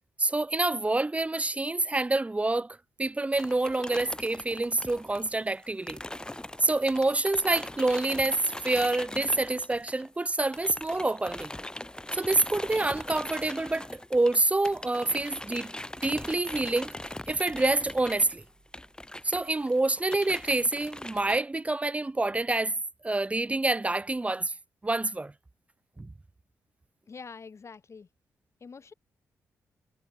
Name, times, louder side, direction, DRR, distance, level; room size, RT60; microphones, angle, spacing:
voice 1, 0.2-6.0 6.6-11.5 12.1-15.7 16.0-16.9 17.3-18.4 19.2-22.8 23.0-24.5 24.8-25.3 26.0-26.1, right 2 dB, 20° right, 0.6 m, -27 dB
sound 1, 3.3-10.2 10.5-21.4, left 1 dB, 10° left, 2.9 m, -41 dB
sound 2, 17.5-21.3, right 3 dB, 35° right, 5.6 m, -62 dB
voice 2, 27.1-28.1 28.6-28.9, left 5 dB, 45° left, 1.3 m, -45 dB
supercardioid pair, 50°, 7 cm